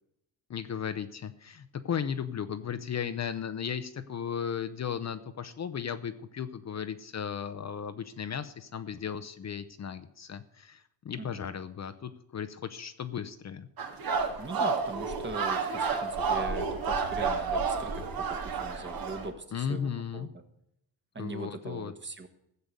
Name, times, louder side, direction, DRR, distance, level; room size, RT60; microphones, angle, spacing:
voice 1, 0.5-13.7 19.5-20.3 21.2-21.9, left 7 dB, 40° left, 10 dB, 0.8 m, -35 dB
voice 2, 11.2-11.5 14.4-20.4 21.1-22.3, right 3 dB, 25° right, 7 dB, 1.6 m, -40 dB
sound 1, 13.8-19.3, right 5 dB, 55° right, 2.1 m, -30 dB
15.5 x 6.8 x 8.1 m, 0.80 s
cardioid pair, 115°, 43 cm